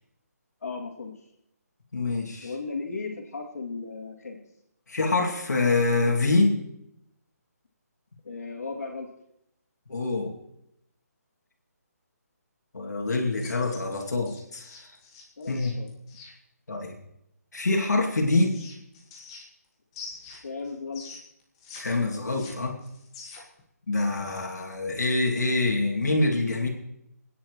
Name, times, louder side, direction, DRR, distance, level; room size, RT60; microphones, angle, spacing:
voice 1, 0.6-1.1 2.4-4.4 8.2-9.1 15.4-15.9 20.4-21.0, left 4 dB, 65° left, -1 dB, 3.0 m, -35 dB
voice 2, 1.9-2.5 4.9-6.6 9.9-10.3 12.7-14.9 15.5-15.7 16.7-17.0 17.5-18.6 21.7-22.8 23.9-26.7, left 2 dB, 90° left, 0 dB, 2.7 m, -25 dB
sound 1, 13.3-16.3 17.8-19.7 19.9-21.8 22.1-23.6, left 4 dB, 20° left, 1.6 m, -45 dB
28.5 x 10.0 x 3.2 m, 0.79 s
hypercardioid pair, 170°, 9 cm